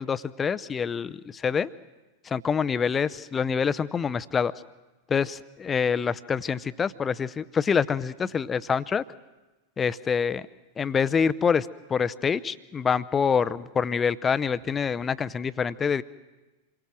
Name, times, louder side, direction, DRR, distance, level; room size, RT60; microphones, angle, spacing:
voice 1, 0.0-1.7 2.3-4.5 5.1-9.0 9.8-10.5 10.8-16.0, left 6 dB, 20° left, 16 dB, 0.7 m, -26 dB
27.5 x 22.5 x 6.2 m, 1.1 s
figure-of-eight pair, 90°, 0 cm